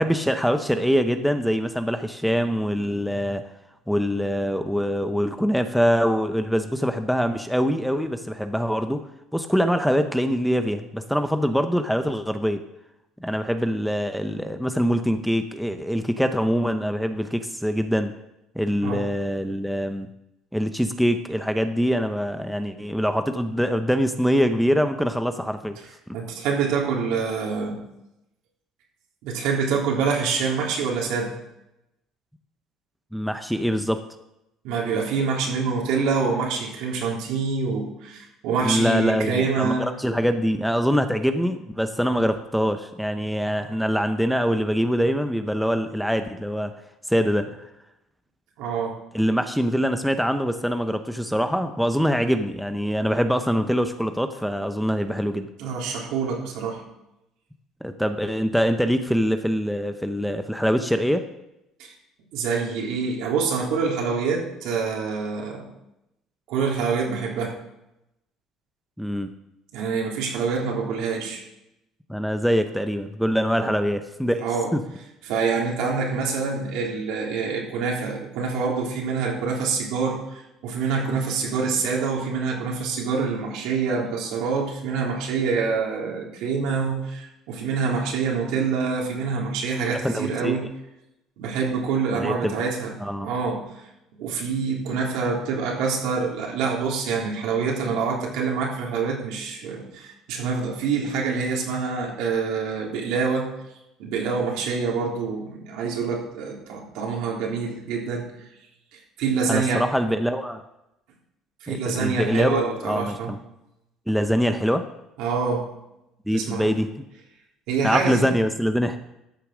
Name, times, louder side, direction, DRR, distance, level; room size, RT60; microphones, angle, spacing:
voice 1, 0.0-3.4 3.9-9.0 9.3-12.6 13.2-18.1 18.5-20.1 20.5-25.8 33.1-34.0 38.6-46.7 47.1-47.5 49.1-55.5 57.8-61.2 69.0-69.3 72.1-74.4 74.7-74.8 89.9-90.6 92.1-92.6 93.0-93.3 109.5-110.6 111.7-113.4 114.1-114.8 116.3-116.9 117.8-119.0, equal, ahead, 8 dB, 0.7 m, -24 dB
voice 2, 26.1-27.8 29.2-31.3 34.6-39.9 48.6-49.0 55.6-56.8 61.8-61.9 62.3-65.7 66.5-67.5 69.7-71.4 73.6-73.7 74.4-74.7 75.3-90.7 91.4-92.9 93.2-93.6 94.2-103.5 104.0-108.3 108.9-109.8 111.6-113.3 115.2-115.6 116.3-116.7 117.7-118.2, right 5 dB, 80° right, -1 dB, 3.5 m, -26 dB
13.5 x 7.0 x 6.2 m, 0.87 s
cardioid pair, 145°, 0 cm